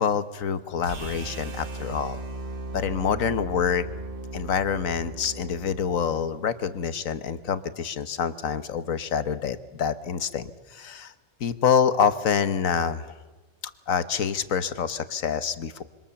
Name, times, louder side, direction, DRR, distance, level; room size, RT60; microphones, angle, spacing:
voice 1, 0.0-2.2 2.7-3.8 4.3-11.1 11.4-13.1 13.9-15.8, left 7 dB, 75° left, 12 dB, 1.5 m, -26 dB
sound 1, 0.8-7.0, right 2 dB, 40° right, 1.5 m, -37 dB
26.5 x 24.5 x 7.1 m, 1.2 s
omnidirectional pair, 1.4 m